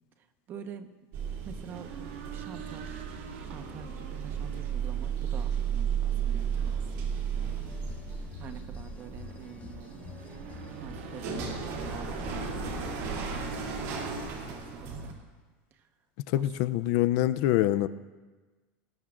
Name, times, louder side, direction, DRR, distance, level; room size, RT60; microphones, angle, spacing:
voice 1, 0.2-1.0 1.4-3.1 3.4-7.3 8.4-10.2 10.8-15.2 15.7-15.9 16.3-16.4, right 7 dB, 35° right, 8 dB, 1.1 m, -47 dB
sound 1, 1.1-15.1, right 7 dB, 55° right, 2.9 m, -34 dB
sound 2, 1.7-14.1, right 6 dB, 85° right, 2.0 m, -47 dB
sound 3, 7.4-12.9, left 7 dB, 25° left, 0.8 m, -48 dB
voice 2, 16.3-17.9, left 14 dB, 60° left, 13 dB, 0.5 m, -25 dB
19.5 x 19.0 x 2.5 m, 1.3 s
supercardioid pair, 145°, 6 cm